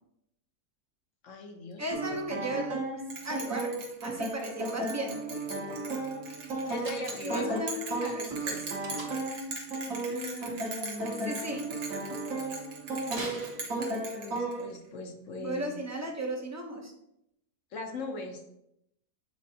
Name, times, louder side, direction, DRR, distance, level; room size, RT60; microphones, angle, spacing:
voice 1, 1.2-1.8 6.7-7.6 8.0-8.2 10.1-11.5 14.1-15.7 17.7-18.4, left 3 dB, 60° left, 4 dB, 1.1 m, -39 dB
voice 2, 1.8-5.2 7.2-8.9 11.2-11.7 15.4-16.9, right 1 dB, 15° right, 1 dB, 0.5 m, -36 dB
sound 1, 1.9-14.7, right 2 dB, 60° right, 1.6 m, -35 dB
Bell, 3.1-14.8, right 3 dB, 85° right, 1.7 m, -41 dB
Slam, 6.8-7.5 8.8-9.4 13.1-14.2, right 2 dB, 45° right, 1.4 m, -42 dB
7.5 x 4.4 x 2.8 m, 0.80 s
omnidirectional pair, 1.7 m